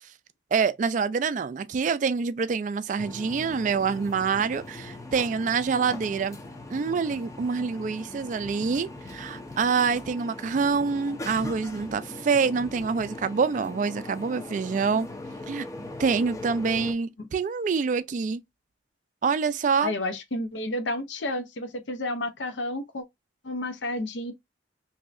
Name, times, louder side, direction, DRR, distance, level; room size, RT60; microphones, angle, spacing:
voice 1, 0.5-6.4 6.7-15.1 15.5-15.7 16.0-18.4 19.2-19.9, right 5 dB, 45° right, 0.3 m, -26 dB
sound 1, 3.0-16.9, left 2 dB, 15° left, 0.5 m, -40 dB
voice 2, 19.8-23.0 23.4-24.3, left 1 dB, 80° left, 0.7 m, -31 dB
3.1 x 2.7 x 2.4 m
head